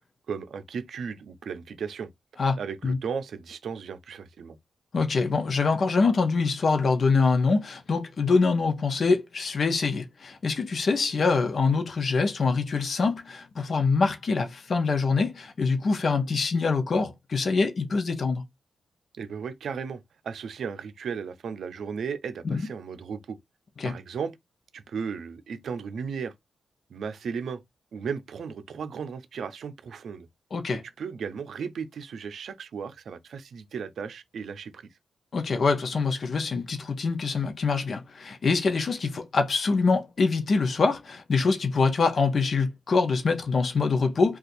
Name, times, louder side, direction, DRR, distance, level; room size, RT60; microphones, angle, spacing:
voice 1, 0.3-2.1 2.6-4.6 19.2-23.4 23.8-24.3 24.7-26.3 26.9-27.6 27.9-30.3 31.0-34.9, right 6 dB, 75° right, 0.5 m, -35 dB
voice 2, 2.4-3.0 4.9-18.4 22.4-22.7 23.8-23.9 30.5-30.8 35.3-44.4, left 4 dB, 55° left, 0.6 m, -24 dB
2.6 x 2.4 x 4.0 m
cardioid pair, 90°, 0 cm